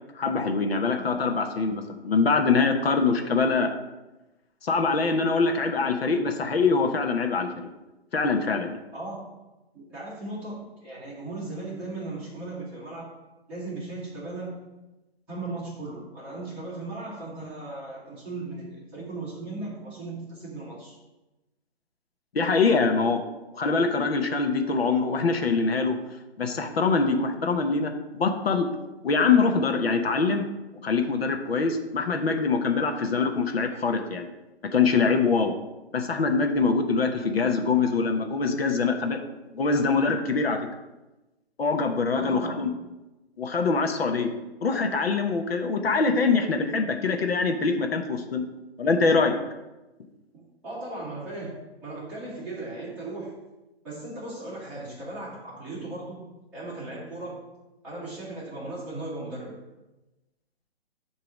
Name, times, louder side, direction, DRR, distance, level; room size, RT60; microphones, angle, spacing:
voice 1, 0.1-3.7 4.6-7.5 8.1-8.8 22.3-23.2 23.5-26.0 26.4-28.7 29.0-30.5 30.8-34.3 34.7-35.5 35.9-39.2 39.5-40.7 41.6-42.7 43.4-44.3 44.6-48.4 48.8-49.3, left 4 dB, 65° left, 5 dB, 0.9 m, -24 dB
voice 2, 8.9-9.3 9.7-13.1 13.5-14.6 15.3-21.0 42.1-42.7 50.3-53.3 53.8-56.2 56.5-57.4 57.8-59.5, right 2 dB, 5° right, -11 dB, 1.2 m, -37 dB
7.8 x 3.0 x 5.8 m, 1.0 s
hypercardioid pair, 170°, 32 cm